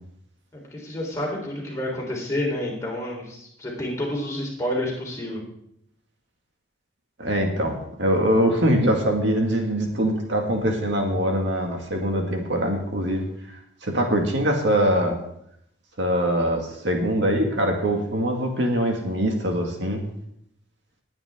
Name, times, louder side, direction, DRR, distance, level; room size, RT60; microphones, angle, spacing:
voice 1, 0.5-5.4, left 1 dB, 15° left, -3 dB, 4.0 m, -29 dB
voice 2, 7.2-15.2 16.0-20.0, equal, 60° right, 2 dB, 2.1 m, -23 dB
20.0 x 9.0 x 3.8 m, 0.74 s
head